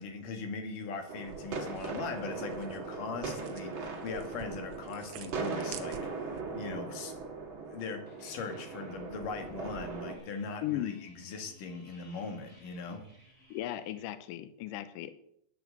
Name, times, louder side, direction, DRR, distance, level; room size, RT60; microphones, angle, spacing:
voice 1, 0.0-7.1 7.7-13.0, left 4 dB, 60° left, 6 dB, 3.1 m, -40 dB
sound 1, 1.1-10.2, right 4 dB, 40° right, 2.3 m, -39 dB
sound 2, 1.2-6.4, right 9 dB, 75° right, 1.7 m, -50 dB
sound 3, 8.1-14.1, left 1 dB, 5° left, 4.7 m, -59 dB
voice 2, 10.6-11.1 13.5-15.1, left 13 dB, 85° left, 12 dB, 1.9 m, -36 dB
10.0 x 9.3 x 7.8 m, 0.72 s
omnidirectional pair, 4.6 m